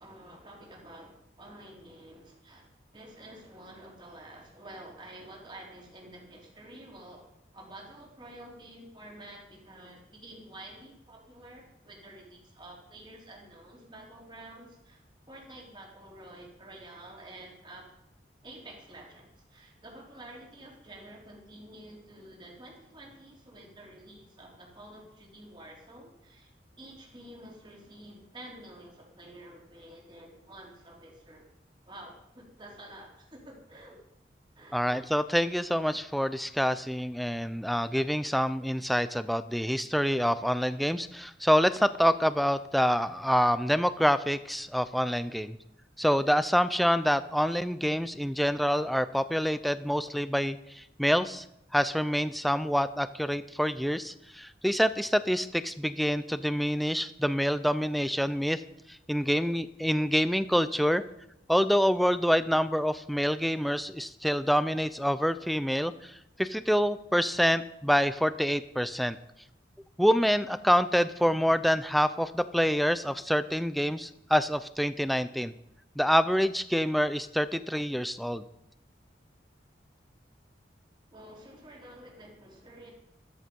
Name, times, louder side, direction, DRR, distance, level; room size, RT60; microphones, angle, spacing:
voice 1, 0.0-2.7 2.9-7.3 7.5-15.0 15.3-17.9 18.4-26.5 26.8-31.5 31.9-34.0 34.6-34.8 81.1-82.9, right 1 dB, 25° right, -1 dB, 3.5 m, -49 dB
voice 2, 34.7-45.6 46.0-51.4 51.7-58.6 58.9-61.0 61.5-69.2 70.0-75.5 76.0-78.4, equal, ahead, 13 dB, 0.5 m, -26 dB
14.0 x 14.0 x 5.4 m, 0.80 s
head